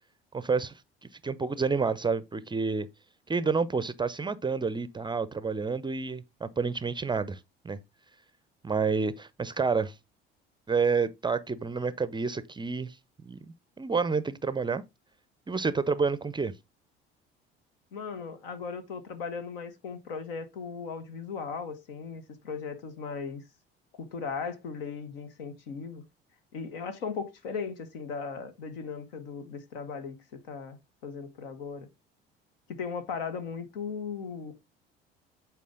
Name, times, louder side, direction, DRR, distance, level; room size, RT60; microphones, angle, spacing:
voice 1, 0.3-0.7 1.2-2.9 3.3-7.4 7.6-7.8 8.6-9.9 10.7-13.0 13.2-13.4 13.8-14.8 15.5-16.5, right 5 dB, 15° right, 0.5 m, -29 dB
voice 2, 17.9-23.4 23.9-26.0 26.5-30.8 31.0-31.9 32.7-34.5, left 5 dB, 70° left, 1.2 m, -37 dB
8.4 x 4.6 x 3.7 m
figure-of-eight pair, 55°, 30 cm